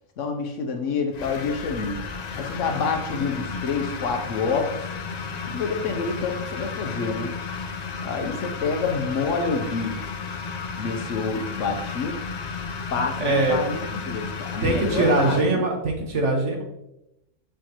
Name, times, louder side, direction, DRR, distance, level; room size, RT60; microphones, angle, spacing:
voice 1, 0.2-2.0 2.3-4.9 5.5-7.3 8.0-10.2 10.8-12.2 12.9-15.7, left 4 dB, 75° left, 4 dB, 1.0 m, -28 dB
sound 1, 1.1-15.4, left 5 dB, 50° left, 0.5 m, -33 dB
voice 2, 13.2-13.6 14.6-16.6, right 2 dB, 65° right, 1 dB, 1.6 m, -22 dB
6.8 x 6.3 x 3.0 m, 0.86 s
omnidirectional pair, 1.3 m